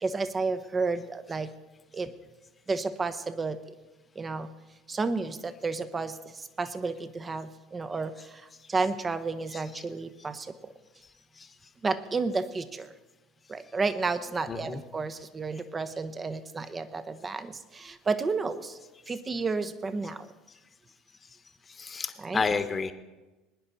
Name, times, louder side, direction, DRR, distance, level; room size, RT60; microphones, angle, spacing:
voice 1, 0.0-1.5 1.9-2.1 2.7-3.7 4.1-4.5 4.9-10.7 11.8-12.9 13.5-18.8 19.1-20.3 22.2-22.4, right 4 dB, 25° right, 12 dB, 1.0 m, -32 dB
voice 2, 14.5-14.8 21.7-22.9, left 4 dB, 25° left, 10 dB, 1.2 m, -30 dB
21.0 x 9.9 x 4.2 m, 1.1 s
hypercardioid pair, 75°, 0 cm